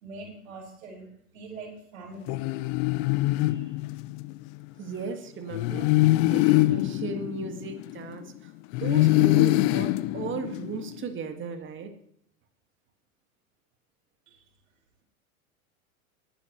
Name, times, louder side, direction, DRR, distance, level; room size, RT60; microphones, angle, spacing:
voice 1, 0.0-1.1 1.3-2.4 14.3-14.4, right 3 dB, 75° right, 0 dB, 4.9 m, -42 dB
sound 1, 2.3-4.4 5.5-8.2 8.7-11.0, left 18 dB, 40° left, 0.4 m, -24 dB
voice 2, 4.8-8.5 8.8-11.9, right 5 dB, 30° right, 6 dB, 1.9 m, -36 dB
20.0 x 10.0 x 3.1 m, 0.69 s
hypercardioid pair, 95°, 42 cm